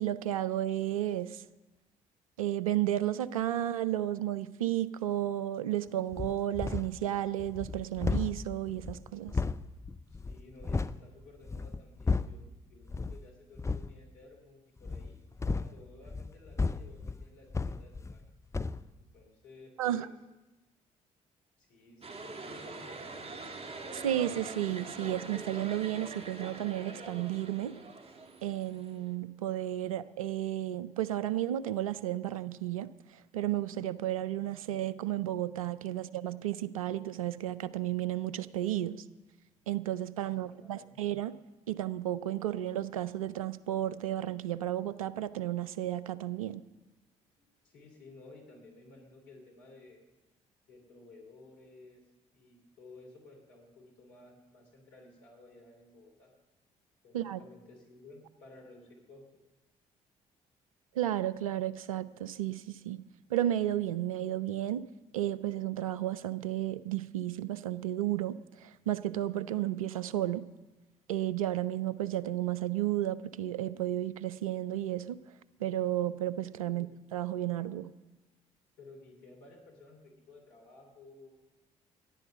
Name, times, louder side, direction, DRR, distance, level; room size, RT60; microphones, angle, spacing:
voice 1, 0.0-1.4 2.4-9.4 19.8-20.1 23.9-27.7 28.4-32.9 33.3-39.0 39.7-41.4 41.7-46.6 57.1-57.4 60.9-63.0 63.3-64.9 65.1-70.5 71.1-75.2 75.6-77.9, right 13 dB, 80° right, 0.4 m, -33 dB
sound 1, 6.1-7.0 7.4-11.0 11.4-12.5 12.9-13.2 13.5-13.9 14.8-18.3 18.5-18.8, left 4 dB, 15° left, 0.5 m, -34 dB
voice 2, 10.1-15.2 15.5-18.2 19.0-20.1 21.6-23.3 35.9-36.1 40.2-41.1 47.3-50.0 50.7-52.0 52.3-56.3 57.0-59.4 76.7-76.9 78.8-81.4, left 2 dB, 70° left, 2.8 m, -55 dB
sound 2, 22.0-29.1, right 3 dB, 35° right, 1.9 m, -44 dB
14.5 x 10.5 x 6.8 m
figure-of-eight pair, 45°, 18 cm